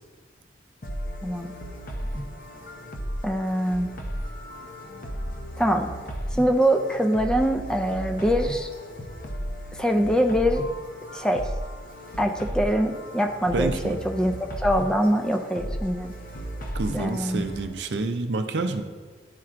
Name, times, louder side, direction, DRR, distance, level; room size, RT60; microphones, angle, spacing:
sound 1, 0.8-17.7, equal, 50° left, 0.7 m, -35 dB
voice 1, 1.2-1.5 3.2-3.9 5.6-5.9 6.4-8.7 9.8-10.6 11.1-11.5 12.2-14.4 14.6-16.1 16.9-17.5, equal, 5° left, 5 dB, 0.3 m, -23 dB
voice 2, 13.5-14.0 16.7-18.8, right 3 dB, 75° right, 8 dB, 0.5 m, -28 dB
10.5 x 4.4 x 2.5 m, 1.4 s
head